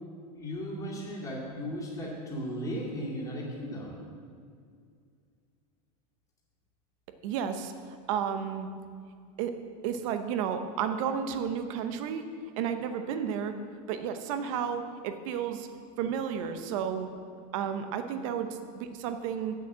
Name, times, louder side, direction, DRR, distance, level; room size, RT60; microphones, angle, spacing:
voice 1, 0.3-4.0, equal, 15° left, -6 dB, 2.3 m, -36 dB
voice 2, 7.2-7.7 8.1-8.7 9.4-9.5 9.8-12.3 12.6-13.5 13.9-15.7 16.0-17.1 17.5-18.5 18.7-19.5, right 8 dB, 55° right, 8 dB, 0.8 m, -32 dB
7.9 x 6.6 x 7.4 m, 2.2 s
supercardioid pair, 160°, 21 cm